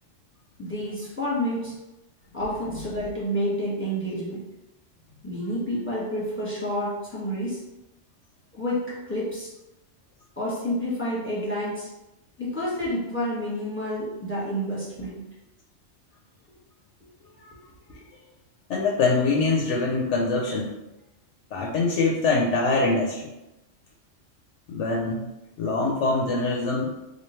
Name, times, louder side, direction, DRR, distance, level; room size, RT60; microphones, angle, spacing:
voice 1, 0.6-1.7 2.3-4.4 5.2-7.6 8.5-8.8 9.1-9.5 10.4-11.9 12.4-15.2, equal, 10° left, -8 dB, 1.2 m, -29 dB
voice 2, 18.7-20.8 21.5-23.3 24.7-25.3 25.6-26.9, left 3 dB, 75° left, -1 dB, 0.9 m, -24 dB
3.1 x 2.5 x 4.2 m, 0.96 s
omnidirectional pair, 1.3 m